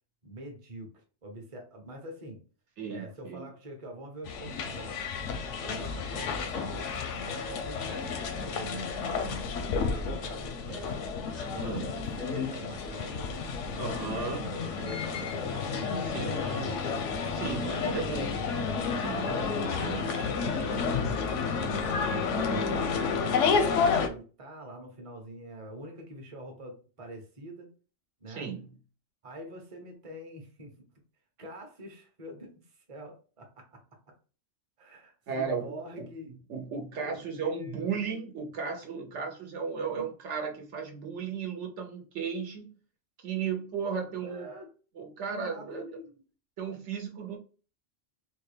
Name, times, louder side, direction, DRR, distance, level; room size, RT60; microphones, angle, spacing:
voice 1, 0.2-2.4 2.9-5.1 5.6-7.0 7.3-9.1 9.9-11.1 11.4-13.5 14.1-18.3 19.3-20.3 20.7-22.1 22.5-27.7 28.2-28.5 29.2-30.7 31.4-33.8 34.8-36.3 37.0-38.0 39.9-40.1 44.2-44.7 45.2-46.2, equal, 30° right, 2 dB, 0.8 m, -45 dB
voice 2, 2.8-3.5 11.6-11.9 13.8-14.4 16.0-16.8 17.4-18.4 19.0-19.5 19.8-20.1 20.6-21.0 28.3-28.7 35.3-42.7 43.2-44.5 44.9-45.8 46.6-47.4, right 6 dB, 75° right, 2 dB, 1.1 m, -35 dB
sound 1, 4.3-24.1, left 5 dB, 90° left, 0.9 m, -31 dB
3.7 x 2.3 x 3.3 m, 0.37 s
omnidirectional pair, 1.2 m